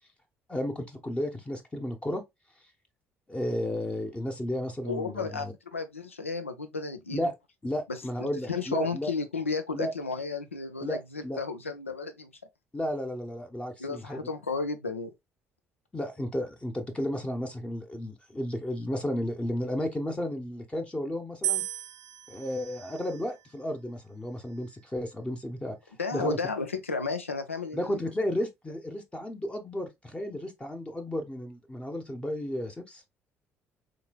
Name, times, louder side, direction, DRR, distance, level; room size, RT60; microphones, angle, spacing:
voice 1, 0.5-2.2 3.3-5.5 7.1-7.3 7.6-9.1 9.7-9.9 10.8-11.4 12.7-14.2 15.9-21.6 22.3-25.8 26.1-26.4 27.7-33.0, left 1 dB, 15° left, 0.8 m, -33 dB
voice 2, 4.8-7.2 7.9-12.3 13.8-15.1 26.0-28.0, left 4 dB, 85° left, 0.4 m, -33 dB
sound 1, 21.4-23.6 24.4-25.0, right 12 dB, 55° right, 0.4 m, -36 dB
3.6 x 3.1 x 2.2 m
figure-of-eight pair, 50°, 7 cm